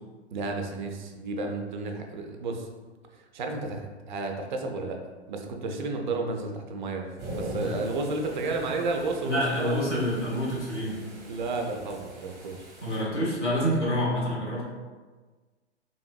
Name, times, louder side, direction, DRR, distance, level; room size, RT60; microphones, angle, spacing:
voice 1, 0.3-2.7 3.1-5.0 5.3-10.0 11.3-12.7, right 3 dB, 45° right, 3 dB, 0.4 m, -32 dB
sound 1, 7.2-13.0, right 1 dB, 20° right, 0.8 m, -41 dB
voice 2, 9.2-11.0 12.8-14.6, equal, 90° left, -5 dB, 1.2 m, -27 dB
2.9 x 2.5 x 2.2 m, 1.3 s
figure-of-eight pair, 115°, 34 cm